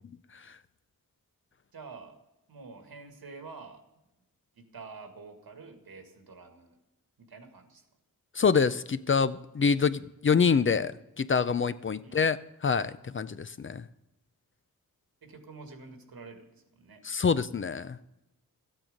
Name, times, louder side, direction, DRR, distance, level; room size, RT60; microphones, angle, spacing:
voice 1, 1.7-2.2 2.5-3.8 4.6-6.8 7.2-7.9 12.0-12.3 15.2-17.0, right 4 dB, 85° right, 5 dB, 2.0 m, -48 dB
voice 2, 8.3-12.4 12.6-13.8 17.0-18.0, left 5 dB, 35° left, 14 dB, 0.4 m, -26 dB
14.0 x 8.8 x 5.1 m, 0.92 s
wide cardioid pair, 140°, 35 cm